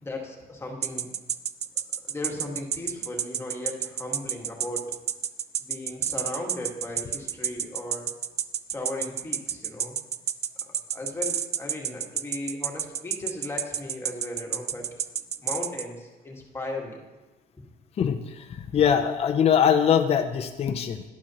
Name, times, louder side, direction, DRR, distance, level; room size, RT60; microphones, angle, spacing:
voice 1, 0.0-1.1 2.0-4.8 5.6-8.1 8.7-9.9 10.6-14.9 15.4-17.0, left 2 dB, 15° left, -1 dB, 1.7 m, -36 dB
sound 1, 0.8-15.8, right 9 dB, 40° right, 0.4 m, -29 dB
voice 2, 18.0-21.0, left 8 dB, 35° left, 6 dB, 0.5 m, -22 dB
11.0 x 10.5 x 3.0 m, 1.1 s
cardioid pair, 110°, 17 cm